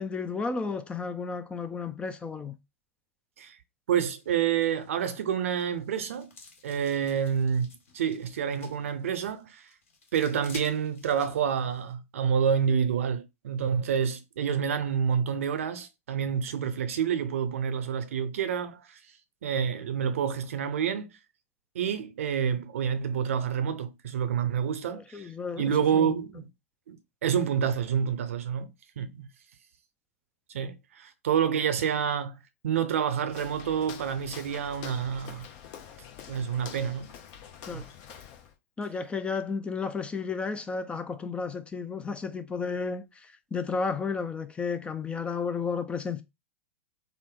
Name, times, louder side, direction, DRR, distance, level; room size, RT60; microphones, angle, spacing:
voice 1, 0.0-2.6 24.8-26.1 37.7-37.9 38.8-46.2, left 5 dB, 15° left, 0.4 m, -33 dB
voice 2, 3.9-6.3 6.6-7.7 7.9-9.7 10.1-19.0 19.4-21.1 21.7-26.5 26.9-28.7 29.0-29.3 30.5-35.5 36.3-37.1 37.7-37.8, right 7 dB, 70° right, 0.6 m, -28 dB
sound 1, 4.1-11.9, left 3 dB, 70° left, 1.4 m, -53 dB
Walk footsteps, 33.3-38.6, left 8 dB, 45° left, 0.7 m, -46 dB
3.5 x 2.0 x 3.7 m
figure-of-eight pair, 95°, 8 cm